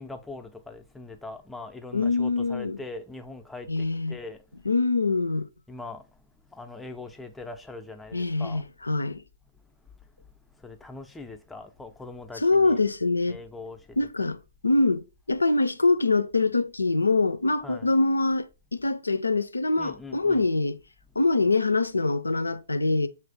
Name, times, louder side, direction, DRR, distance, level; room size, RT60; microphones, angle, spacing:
voice 1, 0.0-4.6 5.7-8.7 9.6-12.8 13.3-14.3 17.6-17.9 19.8-20.5 21.1-21.3, left 3 dB, 5° left, 0.5 m, -42 dB
voice 2, 1.9-2.8 3.7-4.2 4.7-5.5 8.1-9.2 12.4-13.4 14.0-20.8 21.2-23.1, left 3 dB, 80° left, 0.4 m, -24 dB
6.0 x 2.5 x 3.4 m
figure-of-eight pair, 120°, 0 cm